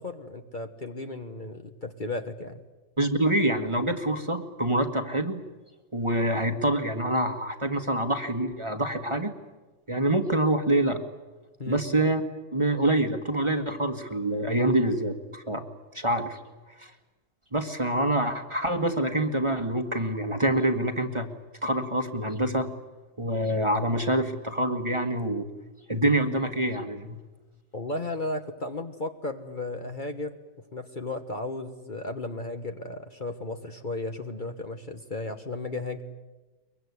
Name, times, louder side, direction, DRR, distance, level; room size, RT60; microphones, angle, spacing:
voice 1, 0.0-2.6 11.6-11.8 27.7-30.4 30.7-36.0, left 2 dB, 35° left, 6 dB, 1.4 m, -34 dB
voice 2, 3.0-5.4 5.9-9.3 9.9-11.0 11.7-12.2 12.5-15.6 15.9-16.4 16.8-16.9 17.5-21.3 21.6-22.7 23.2-25.4 25.9-27.2, right 1 dB, 20° right, 6 dB, 1.5 m, -26 dB
23.0 x 22.5 x 9.6 m, 1.2 s
omnidirectional pair, 1.5 m